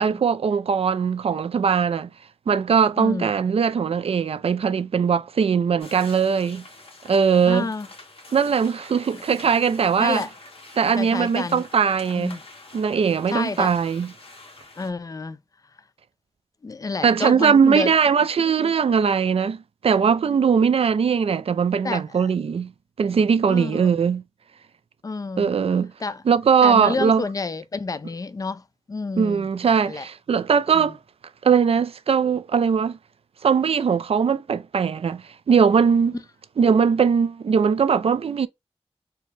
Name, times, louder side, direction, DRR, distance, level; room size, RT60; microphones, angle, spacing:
voice 1, 0.0-2.1 2.5-6.6 7.0-7.7 8.3-10.2 10.8-12.4 12.7-14.1 17.0-22.7 23.0-24.2 25.4-25.9 26.3-27.2 29.2-31.0 31.4-33.0 33.4-36.2 36.6-38.5, right 6 dB, 70° right, 0.4 m, -20 dB
voice 2, 3.0-3.3 7.4-7.9 10.0-10.3 11.0-11.6 12.1-12.4 13.3-13.7 14.8-15.4 16.6-17.9 18.6-18.7 21.8-22.3 23.5-23.9 25.0-25.5 26.0-26.2 26.6-28.6 28.9-29.5 29.9-30.1 30.7-30.9, left 4 dB, 35° left, 0.4 m, -29 dB
sound 1, 5.8-14.9, left 2 dB, 60° left, 1.4 m, -45 dB
4.5 x 2.1 x 3.3 m
wide cardioid pair, 110°, 11 cm